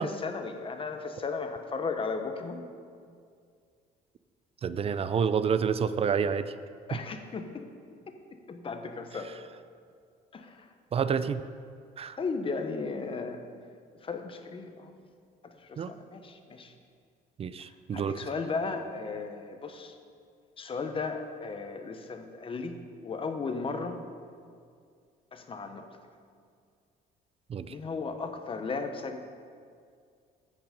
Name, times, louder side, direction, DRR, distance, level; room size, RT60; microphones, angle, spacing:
voice 1, 0.0-2.6 6.9-7.7 8.5-9.3 10.3-10.7 12.2-13.4 14.0-14.9 15.4-16.7 17.9-19.9 20.6-22.8 23.0-24.0 25.3-25.9 27.7-29.2, left 4 dB, 30° left, 6 dB, 1.1 m, -35 dB
voice 2, 4.6-6.5 6.9-7.0 10.9-11.4 12.0-12.2 15.8-15.9 17.4-18.2 27.5-27.8, right 6 dB, 35° right, 13 dB, 0.4 m, -28 dB
15.0 x 6.0 x 5.2 m, 2.2 s
cardioid pair, 110°, 17 cm